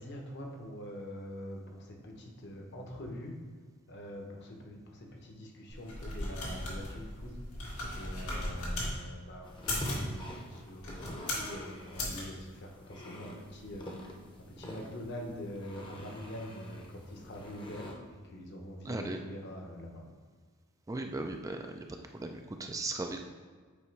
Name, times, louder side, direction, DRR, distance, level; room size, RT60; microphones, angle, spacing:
voice 1, 0.0-3.4 3.9-7.4 7.9-13.9 14.6-20.0, equal, 50° left, 1 dB, 1.0 m, -44 dB
sound 1, 5.7-8.9 9.5-10.1 10.8-11.5 11.9-12.2, left 1 dB, 85° left, 1.9 m, -37 dB
sound 2, 9.4-17.9, equal, 20° left, 0.8 m, -45 dB
voice 2, 18.8-19.2 20.9-21.8 22.1-23.2, right 2 dB, 15° right, 4 dB, 0.3 m, -37 dB
8.3 x 3.0 x 4.6 m, 1.5 s
head